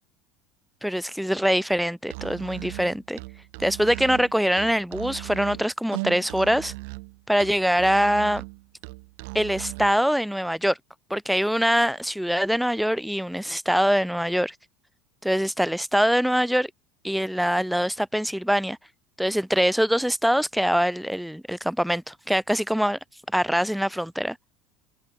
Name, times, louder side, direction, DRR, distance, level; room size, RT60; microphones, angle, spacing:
voice 1, 0.8-3.2 3.6-6.7 7.3-8.4 9.3-10.8 11.1-14.5 15.2-16.7 17.0-18.8 19.2-23.0 23.3-24.4, equal, ahead, 1.8 m, -23 dB
Musical instrument, 2.0-10.0, right 30 dB, 65° right, 5.9 m, -38 dB
cardioid pair, 175°, 0 cm